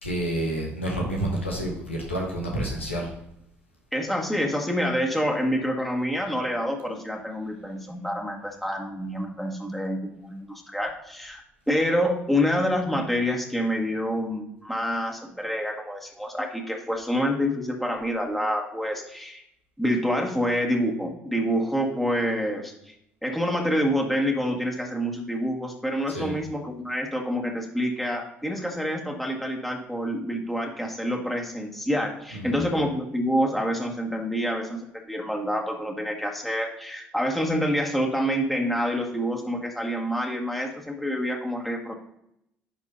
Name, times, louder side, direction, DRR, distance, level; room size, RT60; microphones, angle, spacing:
voice 1, 0.0-3.1 26.1-26.4 32.3-32.7, right 1 dB, 90° left, -1 dB, 1.3 m, -29 dB
voice 2, 3.9-11.4 11.7-19.4 19.8-22.9 23.2-41.9, equal, 5° left, 0 dB, 1.8 m, -27 dB
10.5 x 4.5 x 2.8 m, 0.78 s
figure-of-eight pair, 50°, 6 cm